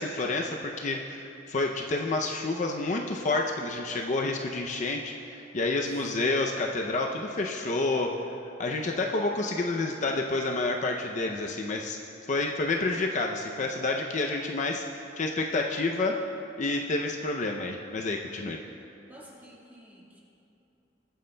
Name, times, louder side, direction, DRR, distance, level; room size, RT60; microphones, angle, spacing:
voice 1, 0.0-8.1 8.6-12.0 12.3-16.2 16.6-18.6, left 2 dB, 40° left, 1 dB, 0.5 m, -29 dB
voice 2, 19.1-20.2, right 1 dB, 10° right, -4 dB, 1.6 m, -50 dB
20.0 x 9.1 x 2.2 m, 2.8 s
head